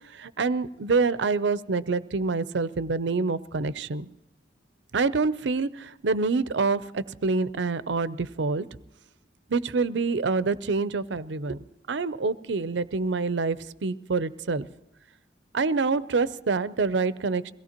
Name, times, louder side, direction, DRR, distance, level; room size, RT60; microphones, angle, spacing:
voice 1, 0.1-4.1 4.9-8.7 9.5-11.6 11.9-14.7 15.5-17.5, right 4 dB, 80° right, 16 dB, 0.6 m, -26 dB
22.5 x 17.0 x 2.9 m, 0.95 s
head